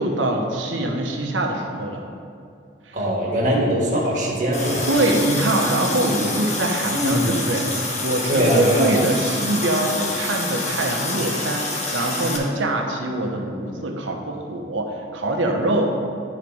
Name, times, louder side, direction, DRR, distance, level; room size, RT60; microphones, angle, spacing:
voice 1, 0.0-2.0 2.8-3.0 4.9-15.9, right 1 dB, 85° right, 1 dB, 1.0 m, -23 dB
voice 2, 2.9-4.9 6.9-7.3 8.3-9.0, equal, 40° right, -4 dB, 1.7 m, -21 dB
Water tap faucet, 4.5-12.4, left 2 dB, 40° left, 1.2 m, -27 dB
11.0 x 4.1 x 4.8 m, 2.5 s
head